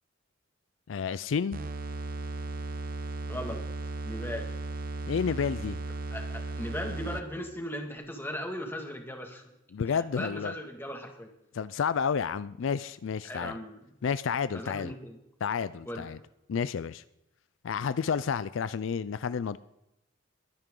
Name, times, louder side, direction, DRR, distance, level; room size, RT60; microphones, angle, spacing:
voice 1, 0.9-1.6 5.1-5.8 9.7-10.5 11.5-13.6 14.0-14.9 15.4-16.2 16.5-17.0 17.6-19.6, left 6 dB, 75° left, 16 dB, 0.4 m, -30 dB
sound 1, 1.5-7.4, right 2 dB, 45° right, 0.9 m, -36 dB
voice 2, 3.3-3.6 4.0-4.5 6.1-9.4 10.1-11.3 13.2-13.8 14.5-15.2 15.9-16.1, equal, 10° left, 3 dB, 2.0 m, -37 dB
22.5 x 10.5 x 3.8 m, 0.89 s
head